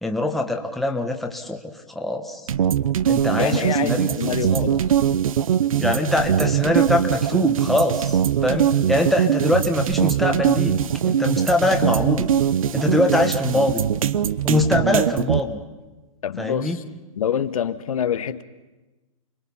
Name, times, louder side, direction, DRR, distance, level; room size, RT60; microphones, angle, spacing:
voice 1, 0.0-2.4 3.1-4.1 4.5-4.7 5.7-12.3 12.7-13.8 14.4-15.6 16.4-16.8, left 1 dB, ahead, 1.2 m, -23 dB
sound 1, 2.5-15.4, right 9 dB, 70° right, 0.8 m, -21 dB
voice 2, 3.4-4.8 16.2-16.8 17.2-18.4, left 9 dB, 70° left, 1.1 m, -26 dB
29.5 x 22.0 x 5.5 m
hypercardioid pair, 145°, 18 cm